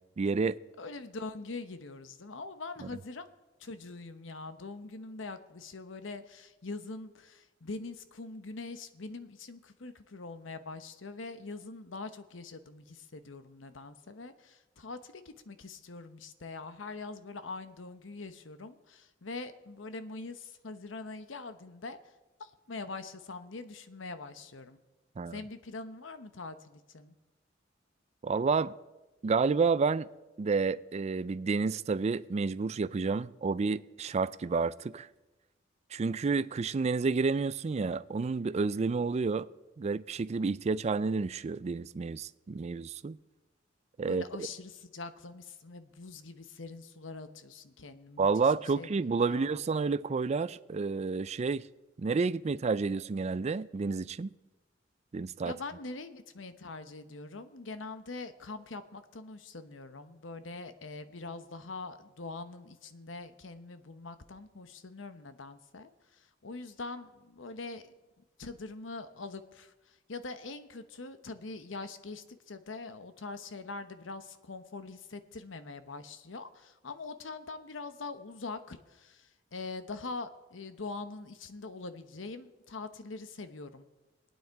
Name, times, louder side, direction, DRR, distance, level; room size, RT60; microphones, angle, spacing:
voice 1, 0.2-0.6 25.2-25.4 28.2-28.7 29.2-30.1 30.4-35.1 35.9-39.5 39.8-43.2 44.0-44.2 48.2-51.6 52.0-54.3 55.1-55.5, right 4 dB, 35° right, 0.4 m, -30 dB
voice 2, 0.8-3.3 3.6-22.0 22.4-24.8 25.3-27.2 44.1-48.9 49.3-49.5 55.4-67.9 68.4-83.9, left 3 dB, 85° left, 1.0 m, -43 dB
23.0 x 9.3 x 4.7 m
head